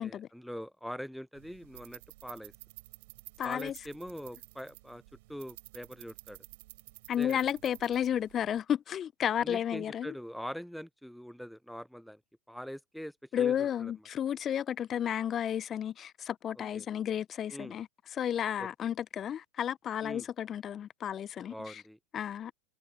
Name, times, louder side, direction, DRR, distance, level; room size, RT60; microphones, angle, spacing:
voice 1, 0.0-2.5 3.4-5.0 5.3-6.4 7.2-7.4 9.4-12.2 12.5-13.9 16.6-16.9 17.5-17.8 18.6-18.7 20.0-20.3 21.5-22.0, equal, ahead, 0.6 m, -43 dB
sound 1, 1.3-8.6, right 22 dB, 60° right, 6.0 m, -52 dB
voice 2, 3.4-3.7 7.1-10.1 13.3-17.9 18.1-21.8 22.1-22.5, left 9 dB, 35° left, 0.9 m, -32 dB
figure-of-eight pair, 85°, 0 cm